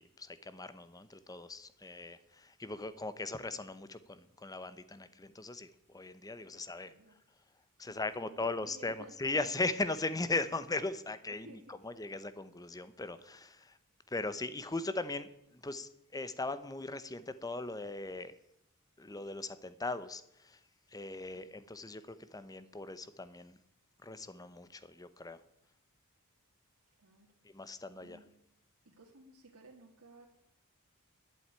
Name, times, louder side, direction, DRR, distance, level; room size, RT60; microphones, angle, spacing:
voice 1, 0.0-6.9 7.8-13.7 14.1-15.3 15.5-18.3 19.0-20.6 20.9-23.6 24.0-25.4 27.5-28.2, left 2 dB, 15° left, 13 dB, 0.8 m, -39 dB
voice 2, 6.5-7.1 7.8-9.1 11.4-11.9 27.0-27.3 27.7-28.3 28.9-30.3, right 3 dB, 90° right, -2 dB, 2.1 m, -56 dB
11.5 x 7.9 x 9.0 m, 0.79 s
head